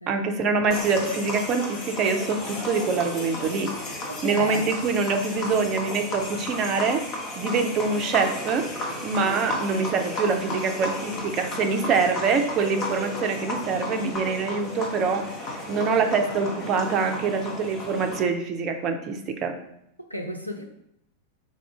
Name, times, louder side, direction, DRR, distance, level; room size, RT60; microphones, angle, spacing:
voice 1, 0.1-7.0 7.4-8.6 9.0-19.5, right 4 dB, 35° right, 5 dB, 0.5 m, -25 dB
sound 1, 0.7-18.2, left 2 dB, 40° left, 0.9 m, -33 dB
voice 2, 4.1-4.7 20.0-20.7, equal, 90° right, 3 dB, 0.4 m, -35 dB
4.1 x 2.4 x 4.7 m, 0.78 s
figure-of-eight pair, 90°, 0 cm